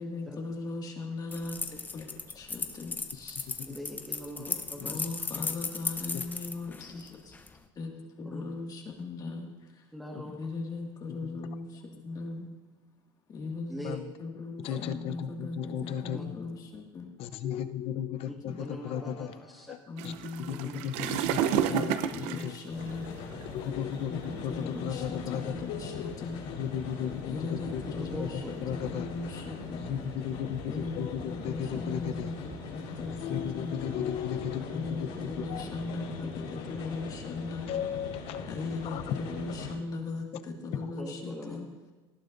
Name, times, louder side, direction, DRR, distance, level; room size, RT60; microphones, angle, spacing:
voice 1, 0.0-3.5 4.5-4.6 4.8-7.4 7.8-7.9 8.2-9.5 10.2-12.5 13.3-13.8 14.2-17.1 18.5-18.6 19.9-20.7 21.0-23.2 24.1-26.5 27.3-29.9 30.7-32.4 32.7-33.8 34.7-37.7 38.5-41.7, left 3 dB, 30° left, 1 dB, 2.0 m, -38 dB
sound 1, 1.3-7.6, left 4 dB, 15° left, 0.7 m, -36 dB
voice 2, 3.7-5.1 8.2-8.4 9.9-10.3 13.7-14.0 14.7-14.8 16.1-16.2 18.6-19.7 20.5-20.7 28.1-28.5 33.9-34.0 41.0-41.6, equal, ahead, -3 dB, 1.6 m, -42 dB
voice 3, 14.6-16.4 17.2-19.3 19.7-19.8 20.0-20.1 20.4-22.6 23.5-26.1 26.5-28.3 28.6-29.1 29.8-32.3 33.2-35.6 37.7-38.4 38.8-39.2, left 9 dB, 50° left, 11 dB, 0.7 m, -35 dB
sound 2, 20.0-23.5 24.2-24.4 25.1-25.2 25.6-25.7 26.3-26.8 27.7-28.8 29.2-29.8 30.2-30.5 30.9-33.7, right 10 dB, 65° right, 0.7 m, -32 dB
sound 3, 22.7-39.7, left 3 dB, 70° left, 4.5 m, -41 dB
18.5 x 13.0 x 2.6 m, 1.3 s
supercardioid pair, 135°, 13 cm